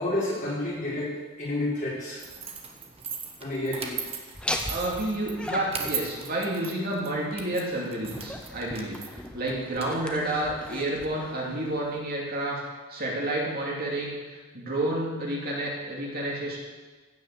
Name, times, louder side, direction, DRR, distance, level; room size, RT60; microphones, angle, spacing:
voice 1, 0.0-2.2 3.4-4.0, left 1 dB, 35° left, -7 dB, 4.8 m, -30 dB
sound 1, 2.2-11.1, right 6 dB, 30° right, 1.2 m, -39 dB
Laughter, 4.3-12.0, left 1 dB, 5° left, 0.8 m, -39 dB
voice 2, 4.6-12.6 12.9-16.6, right 1 dB, 45° right, -3 dB, 2.6 m, -30 dB
15.5 x 6.3 x 7.0 m, 1.3 s
head